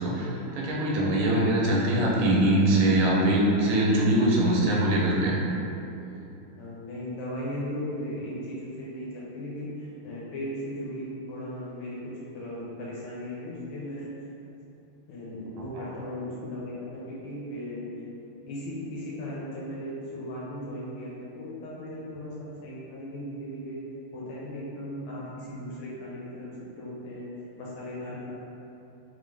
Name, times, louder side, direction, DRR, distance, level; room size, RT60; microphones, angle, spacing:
voice 1, 0.0-5.4, right 1 dB, 75° right, -4 dB, 1.3 m, -23 dB
voice 2, 6.6-14.1 15.1-17.9 18.4-23.8 24.1-26.5 26.8-27.3 27.6-28.3, left 1 dB, 70° left, -7 dB, 1.3 m, -37 dB
3.7 x 2.5 x 3.2 m, 2.9 s
omnidirectional pair, 2.4 m